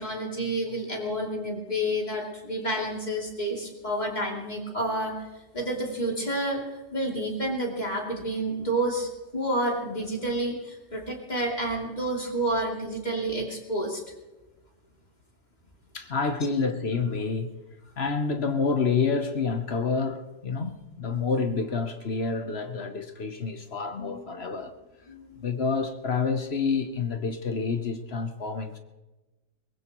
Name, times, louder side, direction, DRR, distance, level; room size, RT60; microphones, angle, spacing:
voice 1, 0.0-5.3 5.5-6.6 6.9-14.0 24.0-24.3 25.1-25.4, right 1 dB, 25° left, -1 dB, 3.0 m, -29 dB
voice 2, 15.9-17.6 18.0-24.7 25.4-28.8, left 4 dB, 45° left, 7 dB, 1.0 m, -28 dB
22.0 x 20.0 x 3.0 m, 1.1 s
omnidirectional pair, 1.8 m